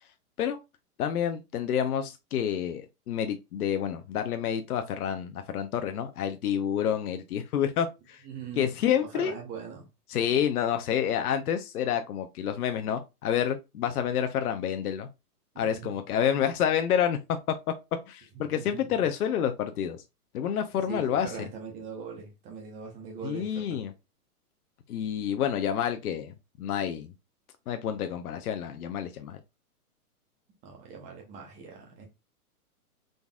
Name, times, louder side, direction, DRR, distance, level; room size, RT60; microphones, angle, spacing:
voice 1, 1.0-8.2 8.6-9.3 10.1-15.1 15.6-17.2 18.1-20.0 20.3-21.5 23.2-23.9 24.9-27.1 27.7-29.4, left 9 dB, 70° left, 0.7 m, -29 dB
voice 2, 8.2-8.7 9.0-9.9 15.5-15.9 18.5-18.9 20.9-23.8 30.6-32.1, right 6 dB, 15° right, 0.9 m, -41 dB
3.9 x 3.5 x 2.3 m
hypercardioid pair, 150°, 46 cm